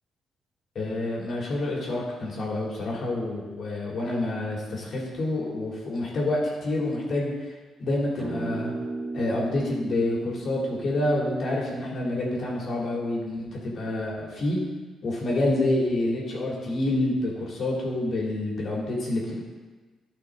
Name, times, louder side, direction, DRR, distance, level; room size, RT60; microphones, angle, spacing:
voice 1, 0.7-7.5 7.8-8.7 9.1-14.6 15.0-19.4, left 1 dB, 55° left, -3 dB, 3.0 m, -28 dB
sound 1, 8.2-12.7, right 2 dB, 30° right, 1.8 m, -36 dB
13.5 x 5.7 x 3.8 m, 1.3 s
cardioid pair, 90°, 0 cm